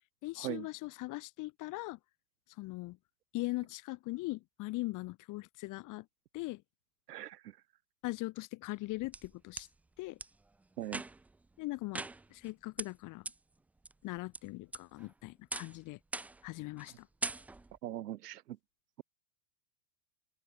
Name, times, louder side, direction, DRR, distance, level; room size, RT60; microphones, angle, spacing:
voice 1, 0.2-2.0 2.6-3.0 3.3-6.0 6.3-6.6 8.0-9.7 10.0-10.2 11.6-12.0 12.3-13.2 14.0-16.0 16.4-17.1, left 20 dB, 40° left, 1.5 m, -40 dB
voice 2, 7.1-7.5 10.8-11.0 17.8-18.6, right 13 dB, 65° right, 2.5 m, -40 dB
sound 1, 8.7-9.7 10.2-10.3 10.8-11.4 11.9-12.5 12.8-12.9 13.3-13.4 13.8-14.4 14.7-15.1 15.5-15.8 16.1-16.5 16.8-16.9 17.2-17.8, right 2 dB, 5° right, 0.4 m, -41 dB
open air
hypercardioid pair, 95°, 49 cm